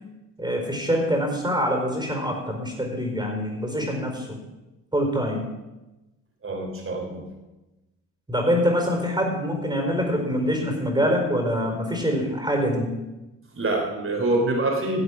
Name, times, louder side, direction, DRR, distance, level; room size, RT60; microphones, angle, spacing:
voice 1, 0.4-4.4 4.9-5.4 8.3-12.9, equal, 10° right, 2 dB, 4.5 m, -25 dB
voice 2, 6.4-7.2 13.5-15.0, right 2 dB, 35° right, 1 dB, 3.6 m, -25 dB
13.5 x 7.9 x 6.2 m, 1.0 s
supercardioid pair, 65°, 36 cm